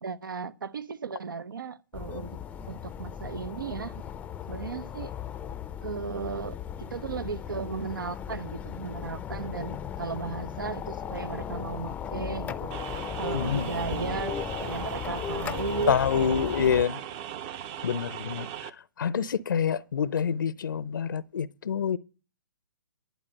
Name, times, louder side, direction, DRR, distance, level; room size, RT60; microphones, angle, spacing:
voice 1, 0.0-2.4 2.7-4.0 4.5-5.1 5.8-12.7 13.2-16.8, right 5 dB, 80° right, 0.9 m, -35 dB
sound 1, 1.9-16.9, left 8 dB, 15° left, 0.5 m, -36 dB
sound 2, 12.7-18.7, right 10 dB, 30° right, 0.7 m, -38 dB
voice 2, 13.3-13.7 15.9-17.0 17.8-18.5 19.0-22.0, left 7 dB, 75° left, 0.6 m, -26 dB
11.5 x 8.4 x 5.3 m
hypercardioid pair, 135°, 11 cm